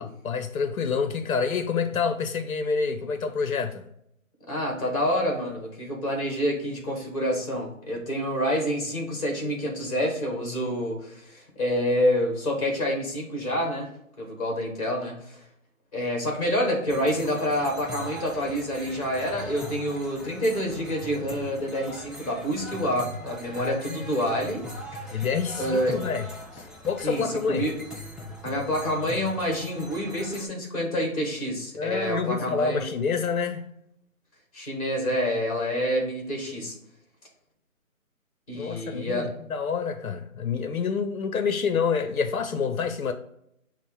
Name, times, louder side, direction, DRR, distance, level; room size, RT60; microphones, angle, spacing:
voice 1, 0.0-3.9 23.5-24.0 25.1-27.7 31.8-33.7 38.5-43.1, left 5 dB, 75° left, 0.6 m, -28 dB
voice 2, 4.5-13.9 14.2-15.4 15.9-24.6 24.9-25.2 25.6-26.0 27.0-27.7 28.4-32.8 34.5-36.8 38.5-39.3, equal, 25° left, 1.2 m, -27 dB
sound 1, 16.9-30.5, left 1 dB, ahead, 0.3 m, -40 dB
5.7 x 2.0 x 4.5 m
hypercardioid pair, 170°, 42 cm